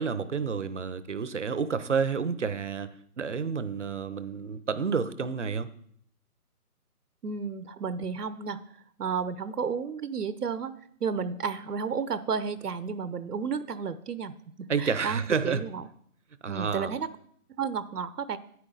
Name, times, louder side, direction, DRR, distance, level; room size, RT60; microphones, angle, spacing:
voice 1, 0.0-5.7 14.7-15.6 16.4-16.9, right 5 dB, 50° right, 14 dB, 0.7 m, -30 dB
voice 2, 7.2-8.6 9.0-10.7 11.0-15.8 16.5-17.1 17.6-18.4, right 6 dB, 85° right, 14 dB, 0.9 m, -32 dB
10.5 x 9.6 x 3.9 m, 0.65 s
hypercardioid pair, 170°, 45 cm